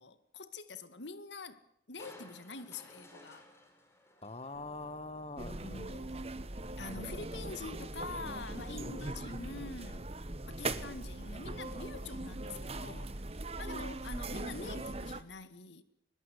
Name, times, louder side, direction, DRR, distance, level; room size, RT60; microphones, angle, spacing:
voice 1, 0.0-1.6 1.9-3.5 5.6-6.4 6.8-10.1 10.5-13.3 13.6-15.8, left 3 dB, 85° left, 1.9 m, -45 dB
Crushing, 2.0-5.4 5.8-5.9, left 1 dB, 15° left, 4.6 m, -57 dB
voice 2, 4.2-6.1, left 2 dB, 35° left, 1.3 m, -44 dB
sound 1, 4.5-10.5, right 1 dB, 85° right, 4.2 m, -63 dB
sound 2, 5.4-15.2, right 2 dB, 35° right, 1.3 m, -40 dB
22.5 x 21.5 x 8.2 m
head